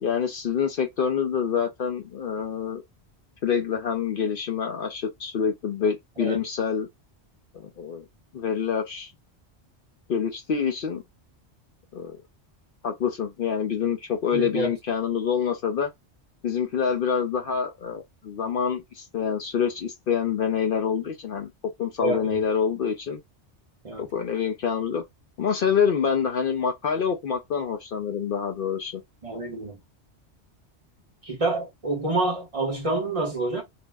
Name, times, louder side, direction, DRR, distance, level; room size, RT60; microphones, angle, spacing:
voice 1, 0.0-2.8 3.4-6.9 7.5-8.0 8.3-9.1 10.1-11.0 11.9-12.2 12.8-15.9 16.4-21.5 21.8-23.2 24.0-25.0 25.4-29.0, left 7 dB, 60° left, 0.6 m, -26 dB
voice 2, 14.3-14.7 22.0-22.4 23.8-24.1 29.2-29.8 31.2-33.6, right 2 dB, 35° right, 0.8 m, -27 dB
2.6 x 2.0 x 3.3 m
omnidirectional pair, 1.2 m